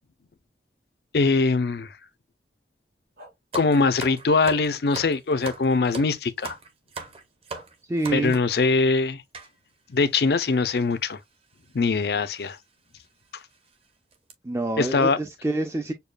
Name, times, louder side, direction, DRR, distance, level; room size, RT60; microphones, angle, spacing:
voice 1, 1.1-1.9 3.5-6.5 8.1-9.2 9.9-11.2 11.7-12.6 14.8-15.2, left 4 dB, 65° left, 0.5 m, -22 dB
sound 1, 3.2-3.3 4.0-4.2 5.0-5.1 5.9-6.1 7.5-7.6 8.5-8.7, right 1 dB, 60° right, 2.6 m, -47 dB
sound 2, 3.5-8.6 9.3-9.5 10.2-10.3 10.5-10.7 11.7-11.9 12.3-12.4 13.0-13.1 13.5-13.7 14.1-14.3, right 4 dB, 35° right, 0.7 m, -39 dB
voice 2, 7.9-8.3 14.4-15.9, right 2 dB, 15° right, 0.4 m, -27 dB
6.7 x 2.3 x 2.2 m
head